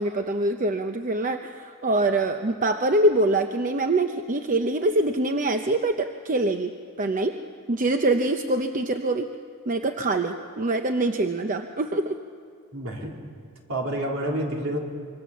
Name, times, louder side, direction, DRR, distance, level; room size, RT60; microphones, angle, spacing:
voice 1, 0.0-6.7 7.0-7.4 7.7-9.3 9.7-12.2, right 2 dB, 35° right, 6 dB, 0.8 m, -24 dB
voice 2, 12.7-13.2 13.7-14.8, right 1 dB, 70° right, 0 dB, 3.7 m, -28 dB
26.0 x 24.5 x 7.2 m, 2.1 s
head